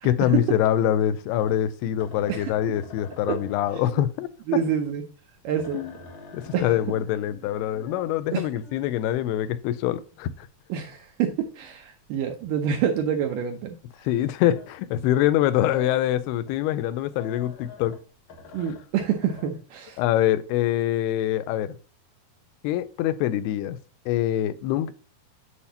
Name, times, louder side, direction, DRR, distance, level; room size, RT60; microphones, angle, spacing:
voice 1, 0.0-4.3 5.7-5.9 6.3-10.5 14.0-18.0 20.0-21.8 22.6-23.8 24.1-24.9, left 12 dB, 85° left, 2.6 m, -24 dB
sound 1, 1.3-14.9 15.2-19.5, left 3 dB, 55° left, 2.1 m, -47 dB
voice 2, 4.5-5.0 5.4-5.8 6.5-6.8 8.3-8.5 10.7-13.8 18.5-20.0, right 8 dB, 80° right, 2.0 m, -27 dB
8.1 x 7.0 x 2.8 m
omnidirectional pair, 4.6 m